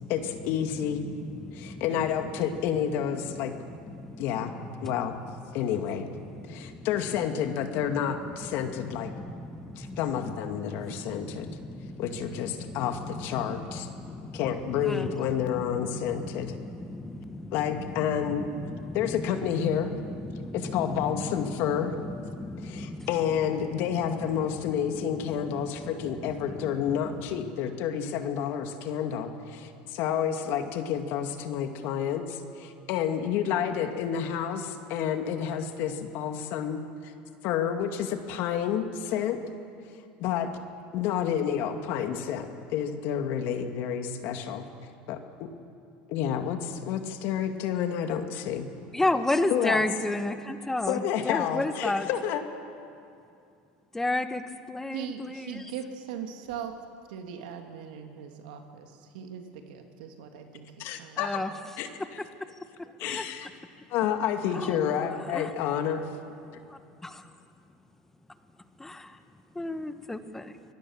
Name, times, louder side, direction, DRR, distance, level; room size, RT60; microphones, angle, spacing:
voice 1, 0.1-1.0 1.5-3.5 4.2-4.5 4.8-5.1 5.5-6.1 6.5-9.1 9.8-11.6 12.0-13.9 14.3-16.5 17.5-18.5 18.9-19.9 20.5-21.9 22.6-37.1 37.4-39.4 40.2-40.5 40.9-44.7 45.1-45.5 46.1-48.7 49.5-49.8 50.9-52.4 60.8-61.4 61.8-61.9 63.0-63.5 63.9-66.0, left 9 dB, 60° left, 6 dB, 2.1 m, -29 dB
voice 2, 1.0-1.8 3.4-4.9 6.3-6.9 7.9-8.2 8.4-10.0 10.5-23.1 24.0-27.5 48.9-52.1 53.9-54.4 54.7-55.6 61.2-61.5 63.0-63.2 64.5-65.5 66.7-67.2 68.8-69.2 69.5-70.6, left 2 dB, 10° left, 9 dB, 1.2 m, -34 dB
voice 3, 54.9-56.7 57.1-61.5, right 7 dB, 85° right, 5 dB, 2.4 m, -40 dB
25.0 x 18.5 x 7.3 m, 2.5 s
supercardioid pair, 120°, 4 cm